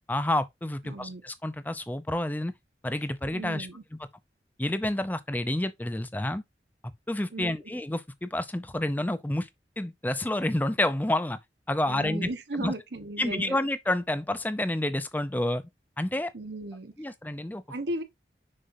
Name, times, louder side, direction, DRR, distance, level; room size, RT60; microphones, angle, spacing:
voice 1, 0.1-2.5 2.8-3.7 4.6-6.4 7.1-9.5 9.8-11.4 11.7-12.3 12.6-12.7 13.2-15.7 16.0-16.3 17.0-17.6, left 1 dB, 10° left, 0.5 m, -29 dB
voice 2, 0.8-1.2 3.2-3.8 7.3-7.5 11.9-13.6 16.3-16.9 17.7-18.0, right 1 dB, 80° right, 1.0 m, -36 dB
6.5 x 5.7 x 2.6 m
head